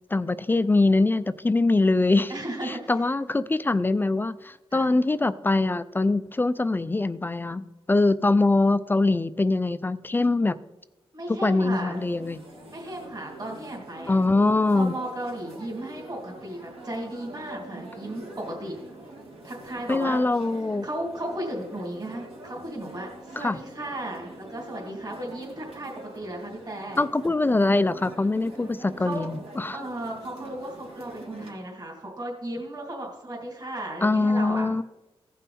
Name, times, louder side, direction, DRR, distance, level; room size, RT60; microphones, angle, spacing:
voice 1, 0.1-2.3 2.6-10.6 11.3-12.4 14.1-14.9 19.9-20.9 23.4-23.6 27.0-29.8 34.0-34.8, left 2 dB, 20° left, 14 dB, 0.4 m, -23 dB
voice 2, 2.3-2.9 4.7-4.9 11.1-12.0 12.7-14.2 14.7-18.8 19.4-20.2 20.8-27.0 29.0-29.3 29.7-34.7, right 1 dB, 40° right, -2 dB, 2.8 m, -35 dB
sound 1, 11.9-31.5, right 2 dB, 70° right, 2.3 m, -44 dB
15.5 x 5.5 x 4.2 m, 1.0 s
cardioid pair, 80°, 11 cm